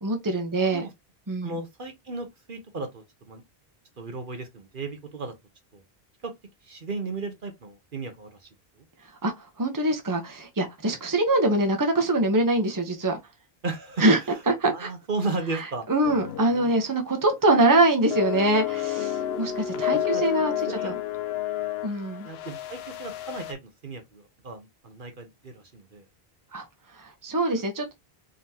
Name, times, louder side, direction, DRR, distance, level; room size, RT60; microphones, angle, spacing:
voice 1, 0.0-0.8 1.3-1.5 9.2-13.2 14.0-14.2 14.5-14.9 15.9-20.5 20.8-20.9 21.8-22.3 26.5-26.7 26.9-27.9, right 2 dB, 20° right, 0.9 m, -24 dB
voice 2, 0.5-0.9 1.4-3.4 4.0-5.3 5.7-5.8 6.2-6.3 6.6-8.5 8.8-8.9 13.6-15.9 16.5-16.7 19.6-20.2 20.7-21.0 22.2-26.0, right 3 dB, 55° right, 1.1 m, -35 dB
sound 1, 16.0-16.8 17.1-17.4 18.1-23.5, left 11 dB, 80° left, 0.8 m, -30 dB
4.0 x 3.8 x 2.8 m
omnidirectional pair, 1.0 m